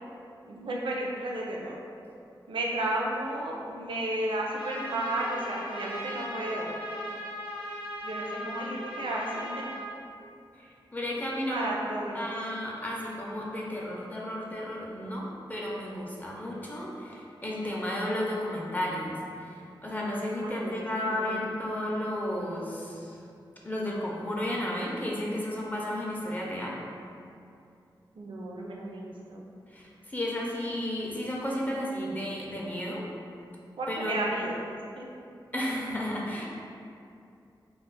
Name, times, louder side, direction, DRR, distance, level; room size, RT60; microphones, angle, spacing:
voice 1, 0.5-1.8 2.5-6.8 8.0-9.7 11.4-12.3 20.4-21.4 28.1-29.5 33.8-34.6 35.0-35.1, right 1 dB, 80° right, -2 dB, 0.4 m, -33 dB
Trumpet, 4.5-9.9, equal, 90° left, 0.6 m, -38 dB
voice 2, 10.6-11.7 12.1-23.2 23.6-26.7 29.7-33.0 33.9-34.2 35.5-36.5, left 1 dB, 20° left, -4 dB, 0.4 m, -33 dB
2.3 x 2.1 x 3.7 m, 2.5 s
wide cardioid pair, 95°, 8 cm